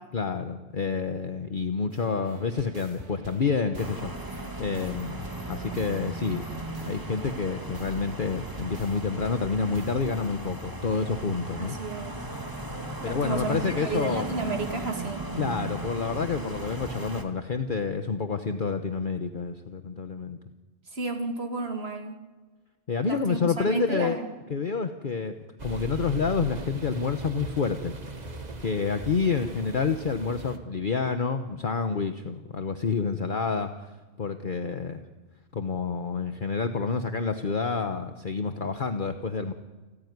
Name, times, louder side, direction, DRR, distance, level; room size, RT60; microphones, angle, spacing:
voice 1, 0.1-11.8 13.0-14.2 15.4-20.4 22.9-24.2 24.5-25.3 25.6-27.9 28.6-33.7 34.2-35.0 35.5-39.5, left 5 dB, 45° left, 7 dB, 1.2 m, -28 dB
sound 1, 1.9-10.0, right 3 dB, 70° right, 2.3 m, -48 dB
sound 2, 3.8-17.2, right 1 dB, 15° right, 2.0 m, -37 dB
voice 2, 11.6-12.2 13.0-15.2 20.9-22.1 23.0-24.3, right 3 dB, 55° right, 4 dB, 2.8 m, -32 dB
sound 3, 25.6-30.6, right 2 dB, 35° right, 1.6 m, -39 dB
29.5 x 14.0 x 9.5 m, 1.3 s
omnidirectional pair, 1.3 m